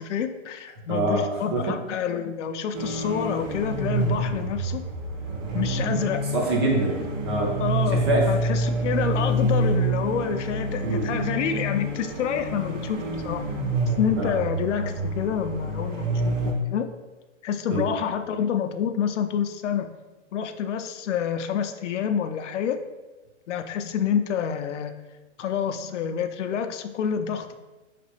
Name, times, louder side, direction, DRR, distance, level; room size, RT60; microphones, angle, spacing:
voice 1, 0.0-4.9 5.5-6.2 7.6-13.4 14.0-16.9 17.4-19.9 20.3-22.8 23.5-24.9 25.4-27.5, left 8 dB, 75° left, 9 dB, 0.5 m, -28 dB
voice 2, 0.9-1.2 1.5-1.8 6.3-7.6 7.9-8.3 10.8-11.1 14.2-14.3 17.7-17.9, right 2 dB, 25° right, -1 dB, 0.4 m, -24 dB
sound 1, 2.7-16.5, right 2 dB, 75° right, 1.3 m, -27 dB
3.9 x 3.3 x 2.9 m, 1.2 s
hypercardioid pair, 150°, 37 cm